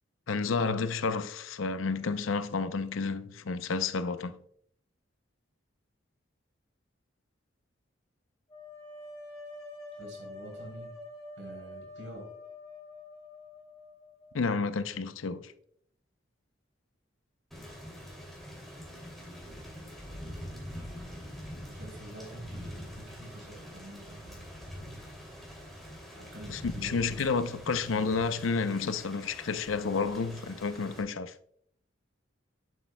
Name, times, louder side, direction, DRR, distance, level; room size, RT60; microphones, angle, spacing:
voice 1, 0.3-4.4 14.3-15.5 26.5-31.3, left 4 dB, 90° left, 0.6 m, -30 dB
sound 1, 8.5-14.4, left 2 dB, 20° left, 3.5 m, -46 dB
voice 2, 10.0-11.0 11.4-12.3 21.7-24.4 26.1-27.1 27.6-28.5, right 1 dB, 75° right, 3.5 m, -47 dB
Thunder / Rain, 17.5-31.0, equal, ahead, 2.5 m, -45 dB
11.0 x 7.6 x 2.2 m
head